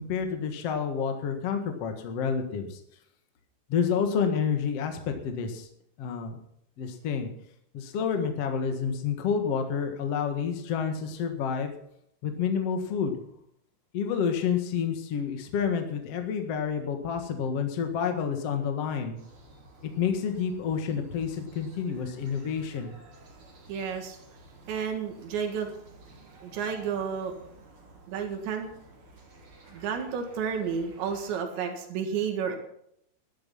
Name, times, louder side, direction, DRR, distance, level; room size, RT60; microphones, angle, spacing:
voice 1, 0.0-2.8 3.7-5.7 6.0-6.4 6.8-7.3 7.7-11.7 12.2-13.2 13.9-19.2 19.8-22.9, left 6 dB, 50° left, 5 dB, 2.0 m, -29 dB
sound 1, 19.2-31.4, right 2 dB, 30° right, 3.8 m, -53 dB
voice 2, 23.7-24.2 24.7-25.7 26.4-27.3 28.1-28.7 29.7-32.6, right 7 dB, 80° right, 4 dB, 4.1 m, -31 dB
13.0 x 12.0 x 5.7 m, 0.71 s
omnidirectional pair, 5.1 m